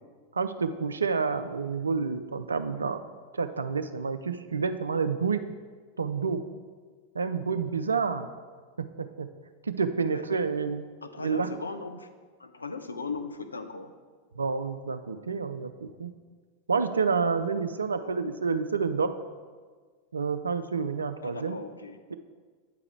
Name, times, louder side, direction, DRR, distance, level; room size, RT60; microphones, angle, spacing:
voice 1, 0.3-3.0 3.3-5.4 6.0-6.4 7.1-8.3 8.8-9.3 9.7-10.8 11.2-11.5 14.4-16.1 16.7-19.1 20.1-21.6, right 5 dB, 75° right, 9 dB, 0.4 m, -29 dB
voice 2, 11.0-12.1 12.4-13.9 18.0-18.4 21.2-22.0, left 4 dB, 80° left, 8 dB, 0.4 m, -38 dB
8.9 x 3.8 x 4.4 m, 1.5 s
figure-of-eight pair, 90°, 0 cm